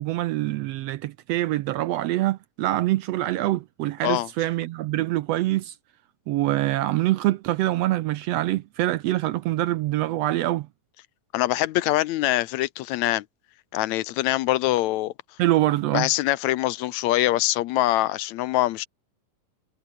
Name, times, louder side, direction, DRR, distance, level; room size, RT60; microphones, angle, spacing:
voice 1, 0.0-5.7 6.3-10.7 15.4-16.1, right 15 dB, 80° right, 1.5 m, -25 dB
voice 2, 11.3-13.3 13.7-15.1 15.9-18.9, left 16 dB, 75° left, 1.9 m, -24 dB
omnidirectional pair, 3.4 m